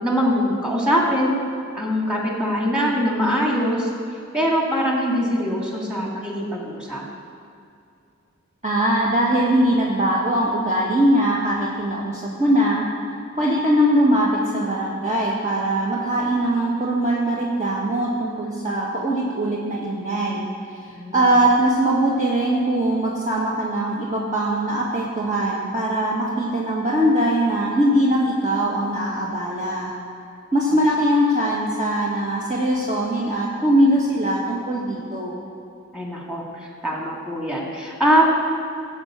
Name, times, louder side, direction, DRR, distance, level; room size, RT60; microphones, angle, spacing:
voice 1, 0.0-1.4 1.7-3.9 4.3-7.0 20.9-21.3 35.9-38.3, equal, 5° right, -2 dB, 2.9 m, -22 dB
voice 2, 8.6-12.9 13.4-20.5 21.1-29.9 30.5-35.4, right 1 dB, 25° right, -5 dB, 1.6 m, -21 dB
12.5 x 5.7 x 8.0 m, 2.5 s
wide cardioid pair, 50°, 30 cm